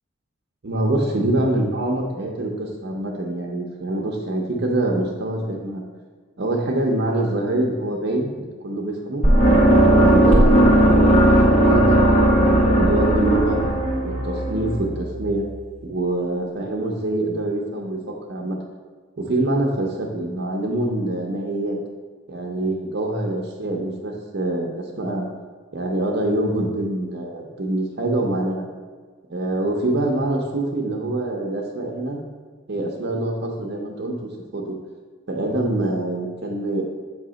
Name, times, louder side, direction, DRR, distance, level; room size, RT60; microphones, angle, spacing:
voice 1, 0.6-5.8 6.4-9.2 9.8-11.1 11.5-13.6 14.0-15.4 15.8-18.6 19.2-21.8 22.3-25.3 25.7-28.7 29.3-32.2 32.7-34.1 34.5-34.8 35.3-36.9, right 1 dB, 55° right, -1 dB, 0.7 m, -25 dB
sound 1, 9.2-15.3, right 1 dB, 35° left, 1.0 m, -16 dB
7.2 x 2.8 x 5.0 m, 1.5 s
head